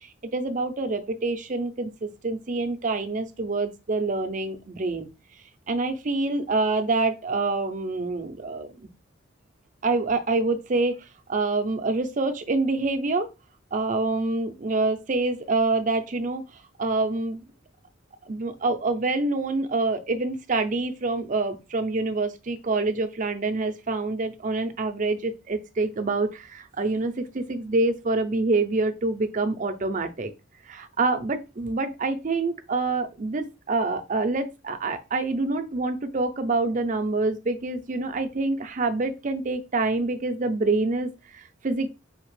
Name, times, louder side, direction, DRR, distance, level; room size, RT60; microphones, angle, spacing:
voice 1, 0.3-5.1 5.7-8.9 9.8-11.0 11.3-13.3 13.7-16.4 16.8-17.4 18.3-30.3 30.7-41.9, right 3 dB, 40° right, 7 dB, 0.6 m, -26 dB
5.0 x 2.8 x 3.2 m, 0.27 s
head